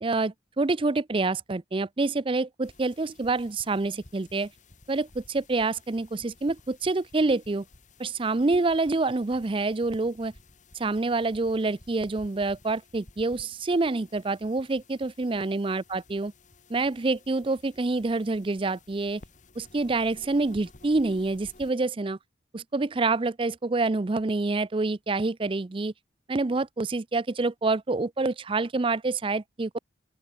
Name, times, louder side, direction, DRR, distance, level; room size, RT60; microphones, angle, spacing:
voice 1, 0.0-4.5 4.9-7.6 8.0-10.3 10.7-16.3 16.7-19.2 19.6-22.2 22.5-25.9 26.3-29.8, right 3 dB, 30° right, 0.5 m, -27 dB
sound 1, 2.6-21.7, left 2 dB, 40° left, 2.2 m, -55 dB
open air
head